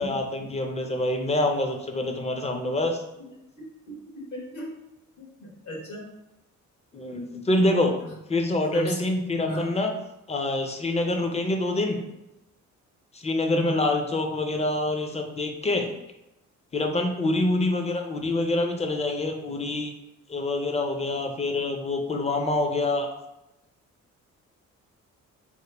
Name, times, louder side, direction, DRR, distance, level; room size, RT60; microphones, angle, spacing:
voice 1, 0.0-3.0 6.9-8.0 8.3-9.9 10.3-12.0 13.1-15.9 16.7-19.9 20.3-23.1, left 2 dB, 20° left, 4 dB, 0.4 m, -26 dB
voice 2, 3.5-4.7 5.2-6.0 8.7-8.9 9.5-9.7 13.5-13.8, left 1 dB, 75° left, -2 dB, 1.2 m, -35 dB
3.0 x 2.1 x 3.3 m, 0.92 s
cardioid pair, 90°, 30 cm